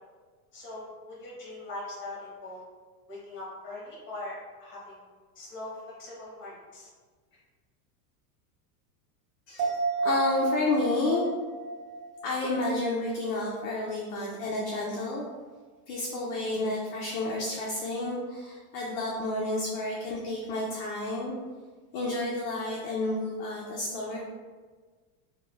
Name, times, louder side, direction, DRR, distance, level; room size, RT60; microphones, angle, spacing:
voice 1, 0.5-2.6 3.1-5.0 5.3-6.9, left 2 dB, 25° left, -5 dB, 1.0 m, -41 dB
sound 1, 9.6-13.3 13.6-13.7, right 4 dB, 60° right, 1.0 m, -32 dB
voice 2, 10.0-11.2 12.2-15.3 15.9-21.3 21.9-24.3, left 2 dB, 50° left, -3 dB, 0.5 m, -30 dB
3.0 x 2.3 x 2.4 m, 1.4 s
supercardioid pair, 145°, 46 cm